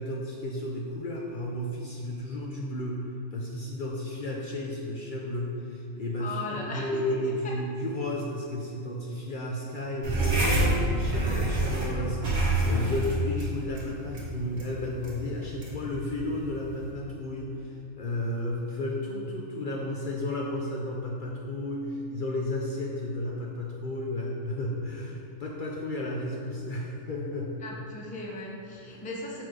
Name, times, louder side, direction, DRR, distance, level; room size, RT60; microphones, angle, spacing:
voice 1, 0.0-3.0 3.3-27.7 28.7-28.8, left 1 dB, 55° left, -2 dB, 0.6 m, -33 dB
voice 2, 6.2-7.0 7.4-7.5 27.6-29.4, left 2 dB, 10° left, -2 dB, 0.4 m, -37 dB
sound 1, 10.0-16.9, right 2 dB, 50° right, 1.6 m, -28 dB
6.0 x 4.3 x 4.8 m, 2.6 s
omnidirectional pair, 1.3 m